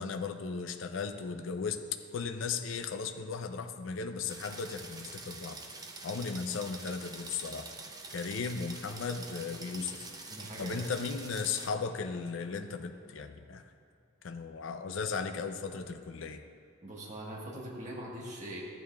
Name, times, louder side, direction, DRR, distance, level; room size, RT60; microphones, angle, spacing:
voice 1, 0.0-1.8 2.1-5.6 6.0-7.7 8.1-10.3 10.6-13.6 14.2-16.4, left 5 dB, 60° left, 7 dB, 0.4 m, -36 dB
sound 1, 4.3-11.7, right 3 dB, 20° right, 0.6 m, -46 dB
voice 2, 10.3-10.9 16.8-18.6, right 1 dB, 35° right, -4 dB, 1.3 m, -42 dB
13.0 x 8.9 x 2.3 m, 2.6 s
head